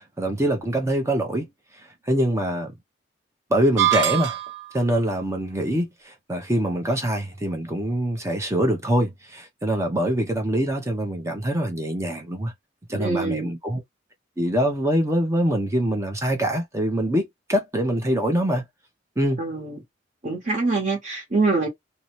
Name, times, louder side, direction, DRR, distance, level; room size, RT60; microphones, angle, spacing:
voice 1, 0.2-1.5 2.1-2.7 3.5-4.4 4.7-12.5 12.9-13.8 14.4-18.6 19.2-19.4, right 1 dB, 15° right, 0.6 m, -24 dB
sound 1, 3.8-4.8, right 12 dB, 75° right, 0.7 m, -23 dB
voice 2, 13.0-13.5 19.4-19.8 20.2-21.7, right 3 dB, 40° right, 1.0 m, -24 dB
2.7 x 2.0 x 2.9 m
head